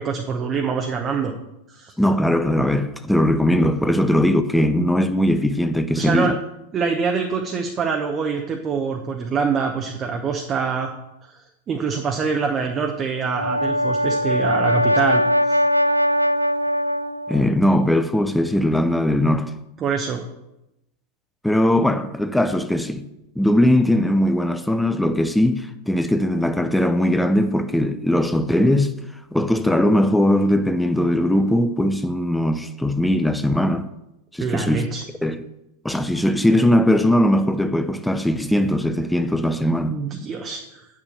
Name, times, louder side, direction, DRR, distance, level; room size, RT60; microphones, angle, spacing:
voice 1, 0.0-1.3 1.7-1.9 6.0-6.4 6.7-11.0 11.3-11.4 11.7-15.6 19.8-20.2 34.4-35.0 39.9-40.9, right 5 dB, 25° right, 0.9 m, -25 dB
voice 2, 2.0-6.4 17.3-19.5 21.4-23.0 23.4-28.9 29.3-33.9 34.3-34.9 35.2-35.5 35.8-40.0, left 1 dB, 5° left, 0.6 m, -19 dB
Brass instrument, 13.2-17.4, equal, 90° left, 0.3 m, -20 dB
8.6 x 6.7 x 6.6 m
figure-of-eight pair, 90°, 0 cm